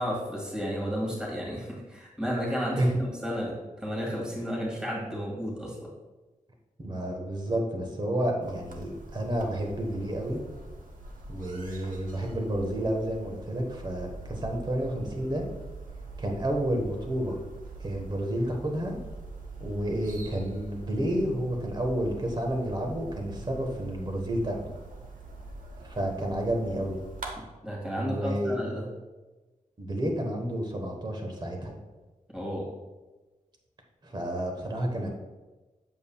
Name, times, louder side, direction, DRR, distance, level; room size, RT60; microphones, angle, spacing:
voice 1, 0.0-5.9 27.4-28.9 32.3-32.7, equal, 5° right, -4 dB, 2.0 m, -33 dB
voice 2, 6.8-10.4 11.3-15.5 16.2-17.4 17.8-19.0 19.6-24.7 25.8-27.0 28.0-28.5 29.8-31.7 34.0-35.1, right 1 dB, 35° right, 2 dB, 1.3 m, -30 dB
sound 1, 8.4-27.3, right 3 dB, 75° right, 1.1 m, -44 dB
7.8 x 7.2 x 2.3 m, 1.2 s
wide cardioid pair, 140°, 14 cm